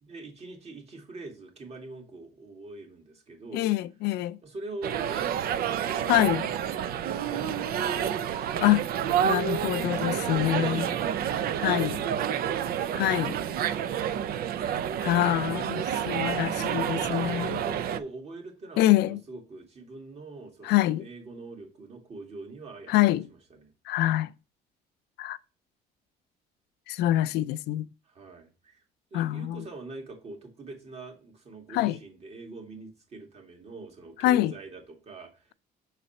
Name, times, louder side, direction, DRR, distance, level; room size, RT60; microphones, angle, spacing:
voice 1, 0.0-3.7 4.4-6.4 7.0-8.9 9.9-12.8 16.1-23.7 28.1-28.8 29.1-35.5, right 3 dB, 40° right, 2.2 m, -44 dB
voice 2, 3.5-4.4 6.1-6.5 8.6-8.8 9.2-10.9 11.6-12.0 13.0-13.4 15.0-17.6 18.8-19.2 20.6-21.1 22.9-23.3 23.9-24.3 25.2-25.4 26.9-27.9 29.1-29.6 31.7-32.0 34.2-34.5, left 15 dB, 80° left, 0.4 m, -25 dB
sound 1, 4.8-18.0, right 9 dB, 65° right, 0.6 m, -29 dB
6.6 x 4.0 x 4.2 m
cardioid pair, 110°, 17 cm